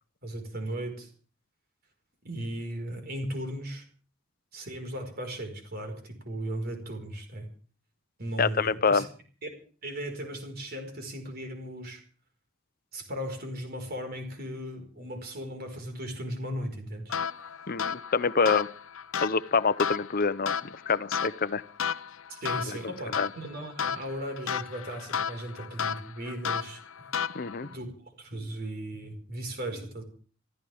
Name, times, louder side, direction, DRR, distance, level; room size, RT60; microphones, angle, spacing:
voice 1, 0.2-1.1 2.2-3.8 4.5-7.5 8.2-9.1 9.4-9.5 9.8-12.0 12.9-17.1 22.3-27.1 27.6-27.9 28.2-30.0, right 1 dB, 50° right, 5 dB, 4.9 m, -37 dB
voice 2, 8.4-9.1 17.7-18.7 19.2-21.6 23.2-23.3 27.3-27.7, left 5 dB, 45° left, 15 dB, 0.8 m, -26 dB
sound 1, 17.1-27.7, left 7 dB, 80° left, 0.8 m, -34 dB
27.0 x 14.5 x 3.5 m, 0.41 s
head